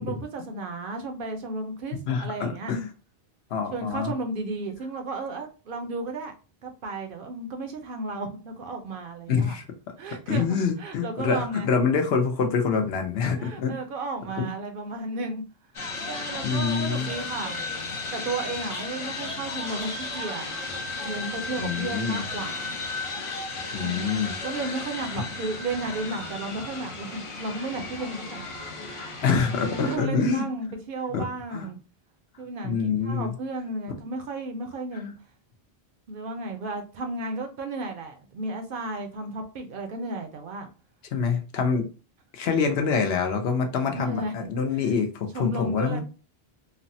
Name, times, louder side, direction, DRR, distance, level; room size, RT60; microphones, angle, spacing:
voice 1, 0.0-2.7 3.7-6.3 6.6-9.6 10.0-10.4 10.8-11.7 13.4-15.4 16.1-17.6 18.1-20.5 21.0-22.8 23.7-24.1 24.4-28.9 29.4-31.8 32.4-35.1 36.1-40.7 43.9-44.5 44.7-44.9 45.3-46.0, right 2 dB, 60° right, 0.7 m, -34 dB
voice 2, 2.1-2.9 3.5-4.1 9.3-9.6 10.3-13.8 14.4-14.5 16.4-17.1 21.6-22.2 23.7-24.3 25.1-25.2 29.2-30.4 31.1-31.2 31.5-31.7 32.6-33.3 41.1-41.9 42.3-46.0, left 5 dB, 75° left, 0.9 m, -26 dB
sound 1, 15.7-30.0, left 3 dB, 40° left, 0.5 m, -34 dB
3.3 x 2.0 x 2.6 m
omnidirectional pair, 1.1 m